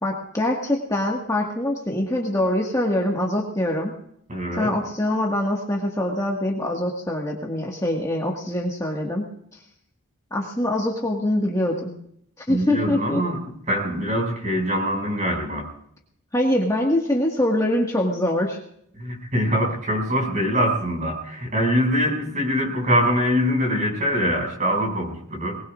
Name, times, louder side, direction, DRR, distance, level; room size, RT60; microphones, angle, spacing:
voice 1, 0.0-3.9 4.6-9.6 10.3-11.9 12.4-13.2 16.3-18.6, left 1 dB, 15° left, -1 dB, 1.8 m, -24 dB
voice 2, 4.3-4.7 12.5-15.7 19.0-25.6, equal, 35° right, 1 dB, 6.2 m, -23 dB
22.5 x 20.0 x 2.5 m, 0.69 s
head